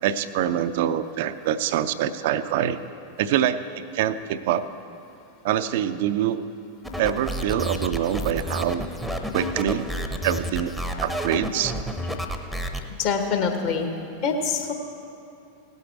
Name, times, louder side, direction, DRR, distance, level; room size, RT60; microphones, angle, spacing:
voice 1, 0.0-2.8 3.2-4.6 5.4-6.4 7.0-8.8 9.3-9.9 10.2-10.7 11.0-11.7, right 10 dB, 50° right, 12 dB, 0.5 m, -25 dB
sound 1, 6.8-12.8, equal, ahead, 0.8 m, -30 dB
voice 2, 13.0-13.9 14.2-14.7, left 5 dB, 45° left, 4 dB, 1.3 m, -24 dB
17.0 x 8.1 x 4.6 m, 2.6 s
figure-of-eight pair, 90°, 0 cm